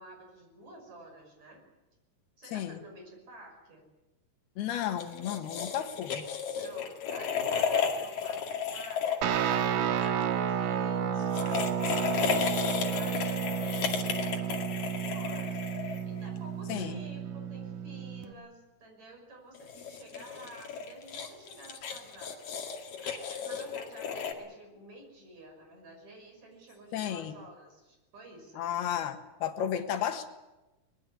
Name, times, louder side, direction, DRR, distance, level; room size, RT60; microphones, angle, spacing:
voice 1, 0.0-1.6 2.4-3.9 6.6-28.7, right 1 dB, 45° right, 3 dB, 7.0 m, -51 dB
voice 2, 4.6-6.3 16.7-17.0 26.9-27.3 28.6-30.3, left 10 dB, 85° left, 7 dB, 3.5 m, -33 dB
sound 1, 5.0-10.1 11.2-16.4 19.5-24.3, left 7 dB, 60° left, 3.8 m, -34 dB
Guitar, 9.2-18.3, right 8 dB, 65° right, 2.4 m, -31 dB
23.0 x 21.0 x 8.3 m, 1.1 s
omnidirectional pair, 4.5 m